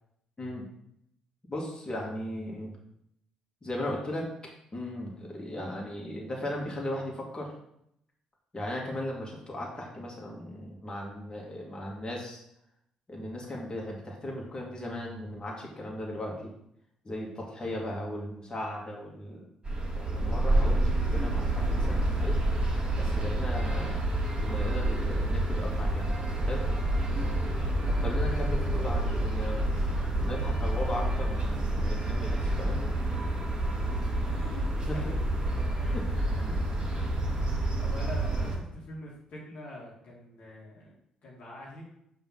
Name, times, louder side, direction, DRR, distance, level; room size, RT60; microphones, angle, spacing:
voice 1, 1.5-2.8 3.6-7.5 8.5-12.4 13.1-16.5 17.0-19.4 20.0-22.4 23.0-24.0 24.4-26.1 26.4-26.6 28.0-29.6 30.2-32.8 34.9-35.0 35.8-36.6 36.9-37.1, left 1 dB, 30° left, -2 dB, 2.1 m, -37 dB
sound 1, 19.6-38.6, right 1 dB, 30° right, 2.3 m, -28 dB
voice 2, 34.2-35.2 37.4-40.9 41.2-41.9, left 1 dB, 60° left, -4 dB, 1.8 m, -45 dB
5.6 x 3.4 x 5.7 m, 0.75 s
hypercardioid pair, 50°, 3 cm